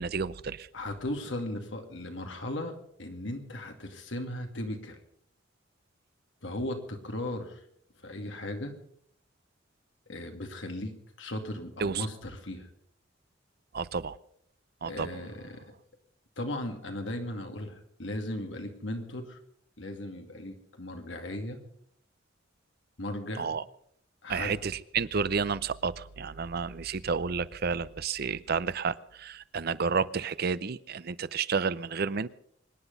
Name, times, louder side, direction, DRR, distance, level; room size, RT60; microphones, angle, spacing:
voice 1, 0.0-0.7 11.8-12.1 13.7-14.2 14.8-15.2 23.4-23.6 24.3-32.3, right 5 dB, 55° right, 17 dB, 0.6 m, -31 dB
voice 2, 0.7-5.0 6.4-7.6 8.0-8.7 10.1-12.7 14.9-15.7 16.4-19.4 19.8-21.6 23.0-23.5 24.2-24.6, left 1 dB, 70° left, 5 dB, 2.4 m, -37 dB
24.5 x 10.0 x 5.4 m, 0.69 s
head